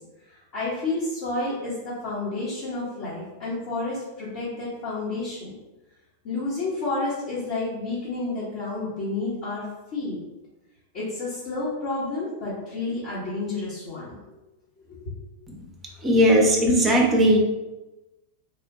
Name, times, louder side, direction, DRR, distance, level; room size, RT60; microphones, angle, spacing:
voice 1, 0.3-5.5 6.2-9.7 9.9-10.2 10.9-14.1 14.9-15.1, left 2 dB, 45° left, -9 dB, 0.9 m, -30 dB
voice 2, 16.0-17.4, equal, 15° right, 0 dB, 0.6 m, -18 dB
3.1 x 2.1 x 2.6 m, 1.1 s
figure-of-eight pair, 90°, 0 cm